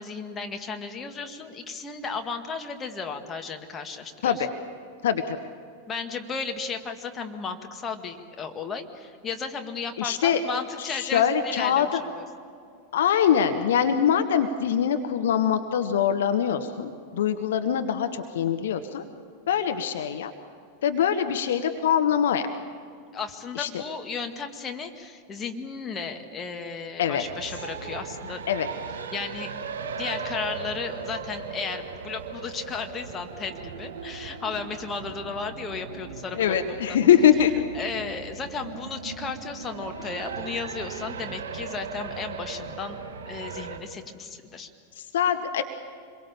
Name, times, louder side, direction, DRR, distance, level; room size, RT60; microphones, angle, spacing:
voice 1, 0.0-4.5 5.9-12.2 23.1-28.4 29.1-29.5 30.0-37.0 37.7-43.0 43.3-44.7, left 5 dB, 20° left, 4 dB, 1.9 m, -34 dB
voice 2, 5.0-5.4 10.0-10.4 10.8-12.0 12.9-19.0 19.5-20.3 20.8-22.5 23.5-23.7 27.0-27.2 28.5-28.7 36.3-37.5 45.0-45.6, left 9 dB, 60° left, 8 dB, 1.1 m, -23 dB
sound 1, 27.2-43.8, right 5 dB, 60° right, 2.3 m, -38 dB
26.5 x 22.5 x 7.2 m, 2.4 s
figure-of-eight pair, 90°, 0 cm